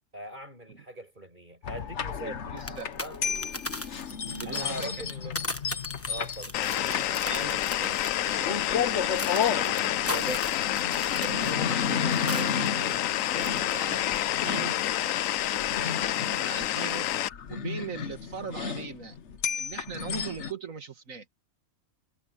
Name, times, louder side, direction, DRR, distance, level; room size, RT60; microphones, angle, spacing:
voice 1, 0.1-2.4 3.0-3.3 4.4-5.4 6.1-6.5, right 1 dB, 35° right, 8.0 m, -41 dB
sound 1, 1.6-20.5, left 6 dB, 60° left, 1.3 m, -34 dB
voice 2, 2.4-2.9 4.2-5.0 6.8-10.5 11.2-14.7 15.5-17.1 17.5-19.2 19.5-21.3, right 4 dB, 85° right, 2.4 m, -40 dB
sound 2, 2.6-12.7 12.9-14.2 14.5-14.6, left 1 dB, 10° left, 1.1 m, -39 dB
sound 3, 6.5-17.3, left 13 dB, 85° left, 1.0 m, -28 dB
omnidirectional pair, 1.4 m